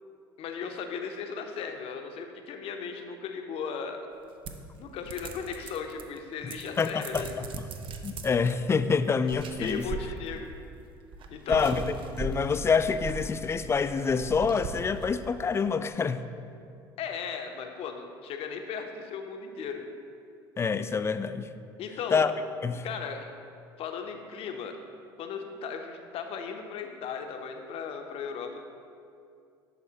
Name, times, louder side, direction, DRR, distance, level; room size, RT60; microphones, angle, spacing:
voice 1, 0.4-4.0 4.8-7.3 9.6-10.6 11.3-11.8 17.0-19.9 21.8-22.2 22.8-23.4 23.8-24.8 25.2-28.6, left 6 dB, 55° left, 5 dB, 0.7 m, -36 dB
sound 1, 4.5-6.2 6.5-8.5 9.2-10.6 11.1-15.4, right 3 dB, 45° right, 0.6 m, -39 dB
voice 2, 6.4-7.7 8.0-9.9 11.5-16.2 20.6-21.5 22.1-22.3 22.6-22.9, left 5 dB, 20° left, 11 dB, 0.3 m, -27 dB
11.0 x 4.1 x 2.8 m, 2.4 s
hypercardioid pair, 70°, 12 cm